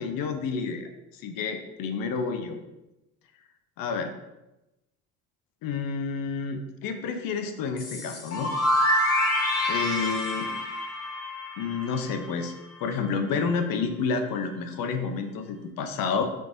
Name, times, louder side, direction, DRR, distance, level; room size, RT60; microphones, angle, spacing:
voice 1, 0.0-2.6 3.8-4.1 5.6-8.5 9.7-10.5 11.6-12.5 12.8-16.2, left 5 dB, 55° left, 6 dB, 0.6 m, -30 dB
sound 1, 7.8-12.5, left 1 dB, 35° left, 0.9 m, -27 dB
3.3 x 3.1 x 2.6 m, 0.96 s
supercardioid pair, 80°, 41 cm